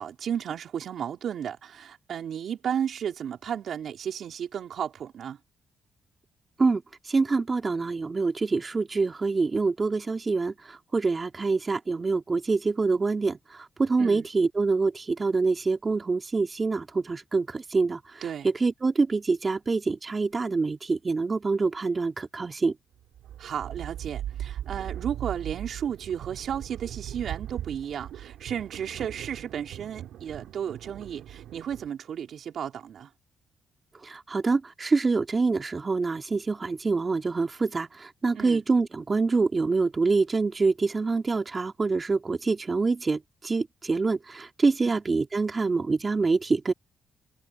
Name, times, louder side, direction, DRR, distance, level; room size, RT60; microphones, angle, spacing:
voice 1, 0.0-5.4 14.0-14.3 18.2-18.5 23.4-33.1 38.3-38.6 44.8-44.9, right 8 dB, 70° right, 4.4 m, -33 dB
voice 2, 7.1-18.2 18.6-22.7 34.0-46.7, right 4 dB, 35° right, 3.3 m, -26 dB
sound 1, 23.0-31.9, right 11 dB, 85° right, 2.6 m, -39 dB
cardioid pair, 70°, 0 cm